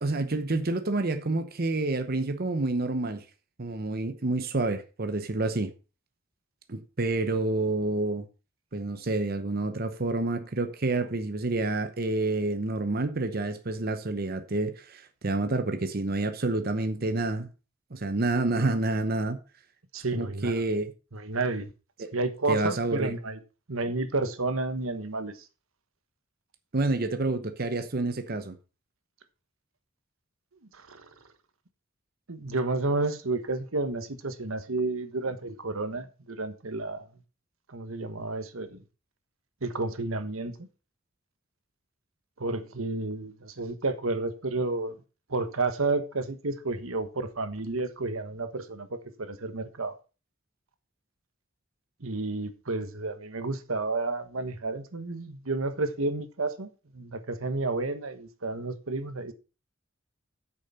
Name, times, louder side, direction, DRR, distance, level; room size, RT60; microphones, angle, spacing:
voice 1, 0.0-3.2 3.6-5.7 6.7-8.3 8.7-17.5 17.9-19.4 20.1-20.9 22.0-22.1 22.5-23.1 26.7-28.6, right 2 dB, 45° right, 0.9 m, -28 dB
voice 2, 19.9-20.7 21.1-21.7 22.1-23.4 23.7-25.4 30.7-31.1 32.3-37.1 37.7-38.8 39.6-40.5 42.4-45.0 45.3-49.9 52.0-59.3, right 3 dB, 85° right, 1.3 m, -31 dB
9.0 x 6.7 x 5.5 m
head